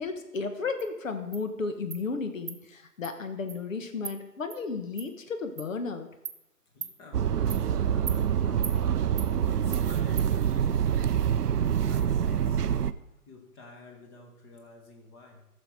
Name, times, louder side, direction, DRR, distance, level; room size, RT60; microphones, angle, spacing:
voice 1, 0.0-6.1, left 4 dB, 55° left, 8 dB, 1.4 m, -33 dB
Insect, 0.8-0.9 1.3-1.4 1.9-2.0 2.5-2.6 3.0-3.1 3.5-3.6 4.0-4.2 4.5-4.6 5.0-5.1 5.6-5.7 6.3-6.4 6.8-6.9 7.5-7.6 8.1-8.2 8.6-8.8 9.2-9.3 9.7-9.8 10.2-10.3, right 7 dB, 55° right, 1.1 m, -38 dB
voice 2, 6.7-10.8 11.2-12.6 13.3-15.5, left 3 dB, 15° left, 2 dB, 1.2 m, -50 dB
sound 1, 7.1-12.9, right 8 dB, 75° right, 0.6 m, -26 dB
14.0 x 6.6 x 4.7 m, 0.89 s
figure-of-eight pair, 140°, 48 cm